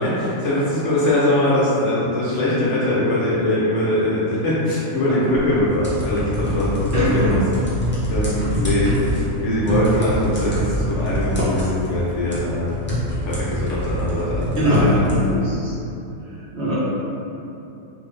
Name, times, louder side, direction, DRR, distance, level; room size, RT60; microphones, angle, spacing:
voice 1, 0.0-7.4 8.1-12.7 13.3-14.8 16.6-16.8, left 1 dB, 60° left, -8 dB, 1.0 m, -21 dB
sound 1, 5.3-15.3, left 1 dB, 15° left, 0.4 m, -25 dB
voice 2, 6.9-7.3 14.6-15.7 16.5-16.8, equal, 55° right, -10 dB, 1.1 m, -21 dB
3.4 x 2.6 x 3.1 m, 2.9 s
omnidirectional pair, 1.5 m